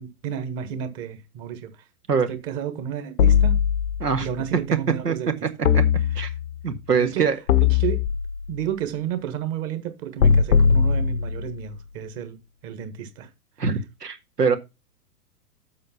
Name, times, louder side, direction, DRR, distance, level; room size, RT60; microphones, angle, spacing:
voice 1, 0.0-1.7 2.3-3.6 4.2-5.8 7.0-7.3 7.6-8.0 8.5-12.4 12.6-13.3, right 9 dB, 30° right, 1.5 m, -32 dB
sound 1, 3.2-4.3 5.6-6.6 7.5-8.6 10.2-11.6, left 7 dB, 70° left, 1.0 m, -20 dB
voice 2, 6.6-7.4 13.6-14.6, right 5 dB, 80° right, 1.5 m, -23 dB
7.7 x 5.1 x 5.7 m
figure-of-eight pair, 110°, 47 cm